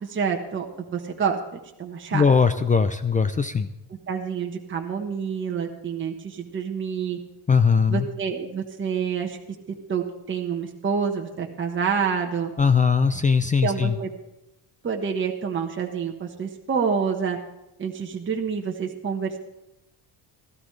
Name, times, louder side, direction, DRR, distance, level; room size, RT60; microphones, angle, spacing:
voice 1, 0.0-0.7 0.9-2.3 4.1-7.2 7.9-9.4 9.9-12.5 13.6-14.1 14.8-17.4 17.8-19.4, right 6 dB, 25° right, 2 dB, 1.3 m, -27 dB
voice 2, 2.1-3.7 7.5-8.1 12.6-14.0, left 5 dB, 20° left, 10 dB, 0.4 m, -20 dB
17.0 x 13.5 x 3.3 m, 0.91 s
cardioid pair, 130°, 44 cm